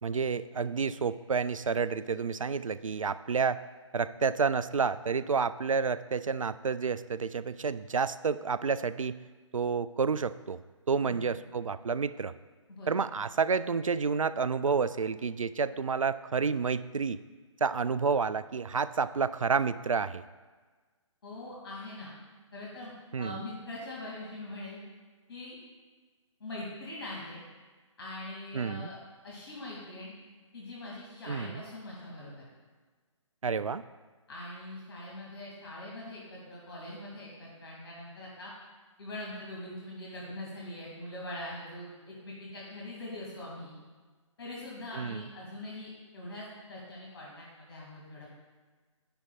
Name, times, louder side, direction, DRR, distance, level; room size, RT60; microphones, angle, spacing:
voice 1, 0.0-3.6 3.9-9.2 9.5-10.6 10.9-12.3 12.9-17.2 17.6-20.2 23.1-23.4 28.5-28.9 31.3-31.6 33.4-33.8 44.9-45.3, right 5 dB, 80° right, 16 dB, 0.4 m, -30 dB
voice 2, 12.7-13.0 21.2-22.1 22.5-24.8 25.3-25.6 26.4-27.4 28.0-29.0 29.2-30.1 30.5-32.4 34.3-38.5 39.0-43.7 44.4-48.4, left 1 dB, 50° left, -4 dB, 2.3 m, -42 dB
10.0 x 10.0 x 2.4 m, 1.4 s
figure-of-eight pair, 140°, 17 cm